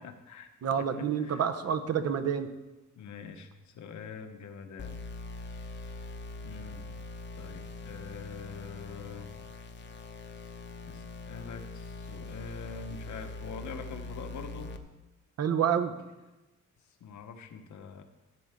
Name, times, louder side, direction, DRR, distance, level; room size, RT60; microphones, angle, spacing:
voice 1, 0.0-0.5 0.8-1.5 2.9-5.0 5.4-6.1 6.4-6.8 7.4-9.3 10.3-10.6 10.9-14.7 17.0-18.0, left 5 dB, 70° left, 6 dB, 1.1 m, -45 dB
voice 2, 0.6-2.5 15.4-15.9, right 8 dB, 55° right, 9 dB, 0.8 m, -28 dB
sound 1, 4.8-14.8, left 3 dB, 40° left, 0.8 m, -42 dB
14.0 x 7.8 x 3.6 m, 1.1 s
wide cardioid pair, 145°, 30 cm